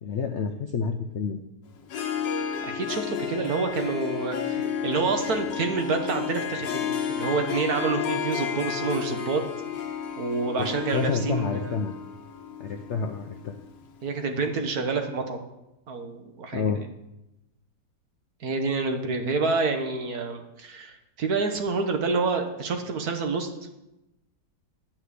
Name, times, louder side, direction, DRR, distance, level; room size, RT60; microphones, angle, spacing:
voice 1, 0.0-1.4 10.6-10.7 10.9-11.9 12.6-13.6 16.5-16.8, left 5 dB, 65° left, 6 dB, 0.7 m, -29 dB
Harp, 1.8-13.7, left 7 dB, 90° left, 1.7 m, -32 dB
voice 2, 2.6-9.4 10.2-11.7 14.0-15.4 15.9-16.8 18.4-23.5, right 4 dB, 60° right, 5 dB, 1.6 m, -28 dB
9.6 x 5.9 x 8.2 m, 0.92 s
omnidirectional pair, 1.9 m